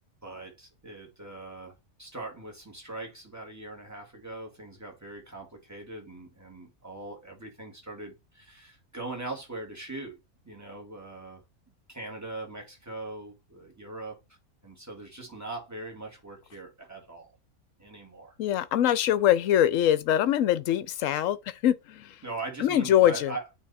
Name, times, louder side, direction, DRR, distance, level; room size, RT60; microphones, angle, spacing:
voice 1, 0.2-1.7 2.0-11.4 11.9-14.2 14.6-17.3 17.8-18.4 22.2-23.6, right 2 dB, 10° right, 2.2 m, -41 dB
voice 2, 18.4-22.2 22.6-23.3, left 11 dB, 65° left, 1.0 m, -23 dB
8.7 x 3.5 x 4.2 m
omnidirectional pair, 1.6 m